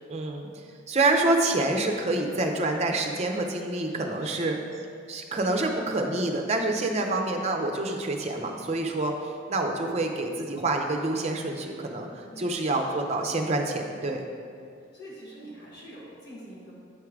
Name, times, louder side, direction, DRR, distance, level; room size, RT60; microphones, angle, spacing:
voice 1, 0.1-0.5 0.9-4.6 5.1-9.1 9.5-14.2, right 2 dB, 35° right, 3 dB, 0.5 m, -27 dB
voice 2, 3.9-4.6 12.3-12.8 14.8-16.7, equal, 50° left, -7 dB, 1.5 m, -45 dB
8.5 x 3.6 x 4.6 m, 2.3 s
head